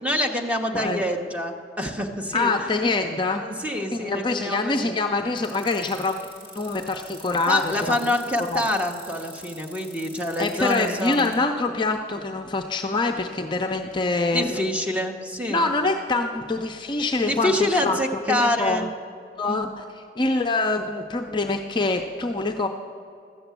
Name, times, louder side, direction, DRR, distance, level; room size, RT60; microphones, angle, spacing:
voice 1, 0.0-2.8 3.4-4.9 7.5-11.3 14.3-15.7 17.2-18.9 19.4-19.7, left 1 dB, 10° right, 2 dB, 0.9 m, -26 dB
voice 2, 2.3-3.5 3.9-6.3 6.5-8.1 8.5-8.6 10.4-14.6 15.5-18.0 18.3-18.9 19.4-22.7, left 3 dB, 25° left, 4 dB, 0.5 m, -25 dB
sound 1, 5.4-11.3, right 1 dB, 30° right, 2.7 m, -44 dB
14.0 x 7.0 x 8.2 m, 2.4 s
head